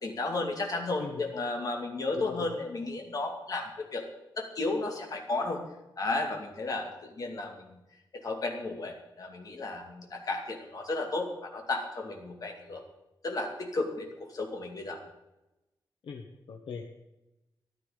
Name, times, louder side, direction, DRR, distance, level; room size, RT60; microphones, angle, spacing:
voice 1, 0.0-4.0 4.4-5.6 6.0-7.8 8.1-12.8 13.2-15.0, left 2 dB, 45° left, 2 dB, 2.4 m, -33 dB
voice 2, 2.1-2.5 16.0-16.9, left 5 dB, 90° left, 2 dB, 1.3 m, -40 dB
14.0 x 11.5 x 5.1 m, 0.98 s
wide cardioid pair, 175°, 9 cm